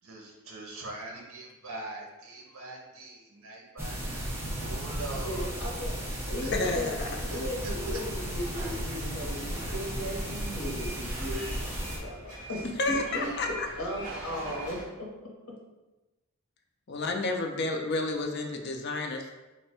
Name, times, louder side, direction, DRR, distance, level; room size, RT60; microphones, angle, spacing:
voice 1, 0.0-5.5 6.4-6.5 7.0-8.0, right 2 dB, 70° right, 0 dB, 0.8 m, -43 dB
sound 1, 3.8-12.0, equal, 10° right, 0.5 m, -34 dB
voice 2, 5.1-6.0 6.3-6.9 7.3-13.5 13.8-15.3, equal, 70° left, -2 dB, 0.8 m, -36 dB
voice 3, 6.5-7.1 12.8-13.7 16.9-19.3, left 3 dB, 50° left, 3 dB, 0.4 m, -30 dB
sound 2, 6.5-14.8, right 1 dB, 35° right, 0.9 m, -44 dB
3.3 x 2.1 x 4.2 m, 1.1 s
head